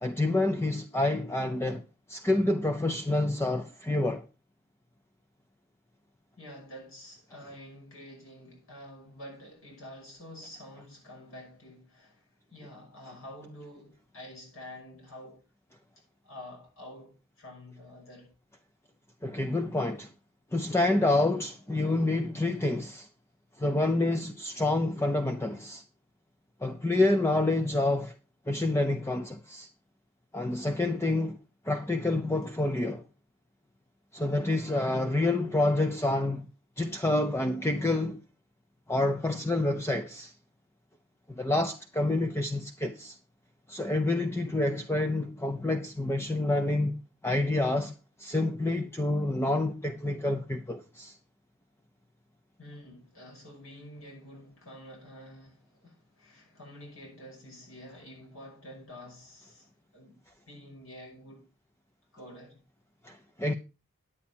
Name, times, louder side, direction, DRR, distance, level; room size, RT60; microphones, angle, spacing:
voice 1, 0.0-4.3 19.2-20.1 20.5-23.1 23.6-25.8 26.6-28.1 28.5-29.7 30.3-31.4 31.6-33.0 34.1-36.5 36.8-38.2 38.9-40.3 41.3-43.2 43.7-47.9 48.2-51.2 63.0-63.5, left 2 dB, 10° left, 0.5 m, -28 dB
voice 2, 6.4-15.4 16.2-18.3 52.6-60.2 60.5-61.5 62.1-62.6, left 1 dB, 80° left, 5.7 m, -48 dB
9.9 x 8.4 x 4.4 m
head